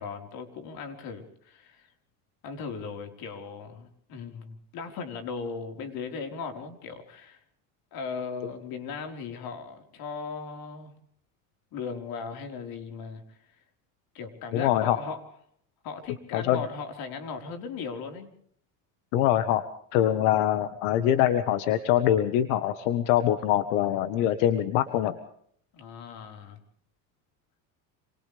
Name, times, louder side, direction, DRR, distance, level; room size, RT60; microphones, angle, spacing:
voice 1, 0.0-1.9 2.4-7.4 7.9-10.9 11.7-13.4 14.1-15.2 15.8-18.3 25.7-26.6, left 5 dB, 60° left, 5 dB, 4.8 m, -38 dB
voice 2, 14.5-15.0 16.3-16.6 19.1-19.6 19.9-25.2, left 11 dB, 85° left, 10 dB, 1.6 m, -24 dB
27.5 x 27.5 x 3.5 m, 0.64 s
cardioid pair, 120°, 39 cm